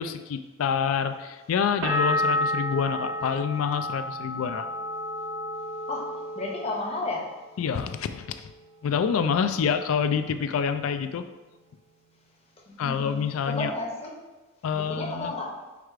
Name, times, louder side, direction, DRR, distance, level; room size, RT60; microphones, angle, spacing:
voice 1, 0.0-4.7 7.6-8.5 8.8-11.2 12.8-13.7 14.6-15.3, left 7 dB, 80° left, 10 dB, 0.3 m, -27 dB
sound 1, 1.8-7.5 7.8-8.5, left 1 dB, 75° right, 0.8 m, -31 dB
voice 2, 6.3-7.3 12.7-14.1 14.7-15.5, left 2 dB, 30° left, -1 dB, 0.7 m, -32 dB
4.7 x 2.4 x 4.6 m, 1.2 s
head